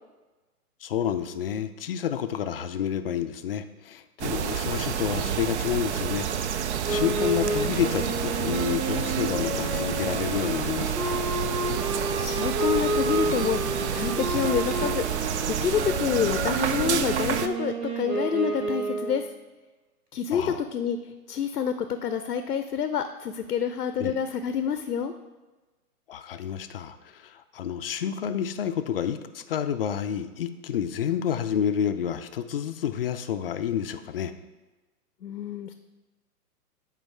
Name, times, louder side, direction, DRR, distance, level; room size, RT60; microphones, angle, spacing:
voice 1, 0.8-11.2 20.3-20.6 24.0-24.1 26.1-27.0 27.5-34.3, left 9 dB, 40° left, 9 dB, 0.4 m, -29 dB
sound 1, 4.2-17.5, right 8 dB, 50° right, 0.5 m, -29 dB
Wind instrument woodwind instrument, 6.8-19.3, right 1 dB, 90° right, 1.8 m, -30 dB
voice 2, 12.2-13.6 13.9-15.0 15.5-19.2 20.1-21.0 21.3-25.1 35.2-35.7, left 8 dB, 85° left, 9 dB, 0.6 m, -28 dB
7.8 x 4.6 x 4.6 m, 1.2 s
hypercardioid pair, 130°, 46 cm